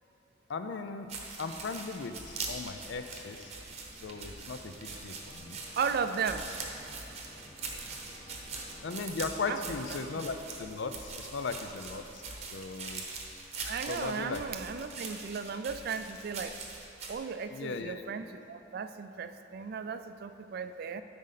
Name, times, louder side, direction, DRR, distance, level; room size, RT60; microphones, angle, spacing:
voice 1, 0.5-1.1 1.4-3.5 4.0-5.6 8.8-12.2 12.5-13.0 13.9-14.4 17.5-18.0, left 4 dB, 65° left, 8 dB, 0.4 m, -37 dB
sound 1, 1.1-17.1, right 4 dB, 30° right, 0.8 m, -43 dB
sound 2, 1.6-10.1, equal, 15° left, 1.0 m, -56 dB
voice 2, 5.8-6.5 9.5-9.6 13.7-16.6 17.1-21.0, right 6 dB, 50° right, 10 dB, 0.3 m, -35 dB
12.5 x 5.2 x 4.1 m, 3.0 s
head